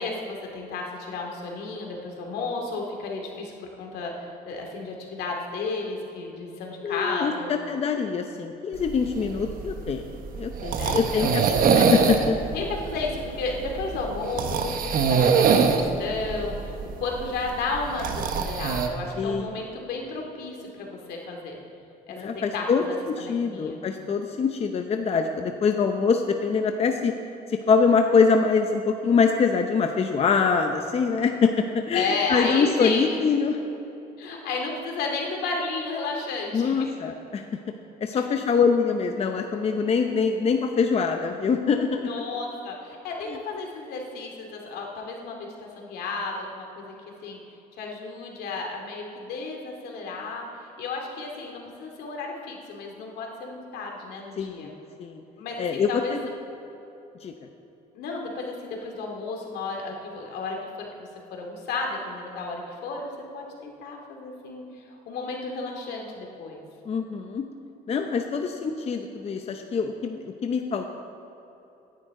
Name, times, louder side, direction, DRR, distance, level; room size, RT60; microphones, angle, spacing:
voice 1, 0.0-7.6 10.8-11.3 12.5-21.6 22.1-23.8 31.9-33.2 34.2-36.9 38.1-38.2 42.0-46.9 47.2-47.4 47.8-54.7 55.4-56.2 57.9-66.6, left 3 dB, 75° left, 1 dB, 2.4 m, -33 dB
voice 2, 6.8-11.4 11.7-12.3 19.2-19.5 22.1-27.1 27.5-33.6 36.5-37.4 38.0-42.1 43.3-43.4 54.4-54.7 55.0-55.2 55.6-56.2 57.2-57.3 66.9-67.5 67.9-70.9, left 5 dB, 35° left, 5 dB, 0.7 m, -24 dB
sound 1, 8.8-18.9, right 5 dB, 55° right, 1.1 m, -24 dB
17.0 x 10.5 x 3.8 m, 3.0 s
cardioid pair, 110°, 17 cm